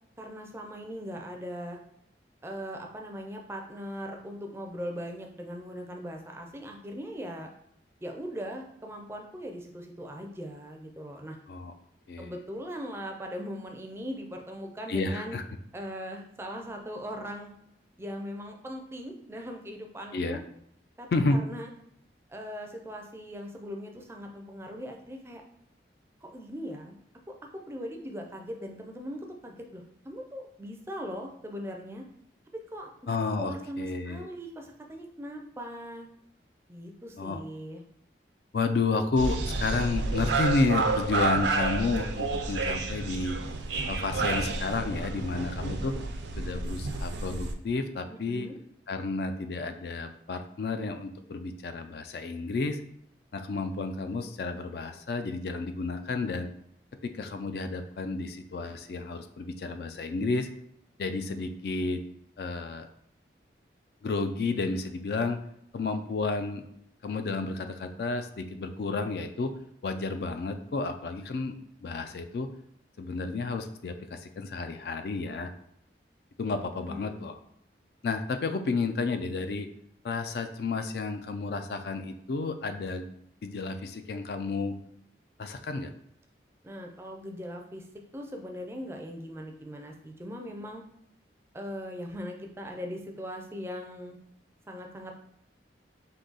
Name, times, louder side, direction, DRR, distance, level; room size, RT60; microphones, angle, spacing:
voice 1, 0.2-1.8 2.4-7.5 8.0-11.4 12.2-15.4 15.7-17.5 18.0-20.4 21.0-21.7 22.3-25.4 26.2-27.0 27.3-32.1 32.5-36.1 36.7-37.8 48.1-48.6 76.5-77.3 86.6-87.9 88.1-90.8 91.5-94.2 94.7-95.1, equal, 15° right, 2 dB, 0.4 m, -40 dB
voice 2, 14.9-15.4 20.1-20.4 21.1-21.4 33.1-34.3 37.2-37.4 38.5-43.4 43.9-45.9 46.4-48.5 48.9-52.8 53.3-56.5 57.0-60.5 61.0-62.0 62.4-62.9 64.0-65.4 65.7-66.6 67.0-69.5 69.8-71.5 71.8-72.5 73.0-75.5 76.4-77.4 78.0-79.7 80.0-83.1 83.4-84.8 85.4-85.9, left 3 dB, 60° left, 8 dB, 0.3 m, -31 dB
sound 1, 39.2-47.5, right 3 dB, 75° right, 0.5 m, -30 dB
3.8 x 2.7 x 3.9 m, 0.73 s
head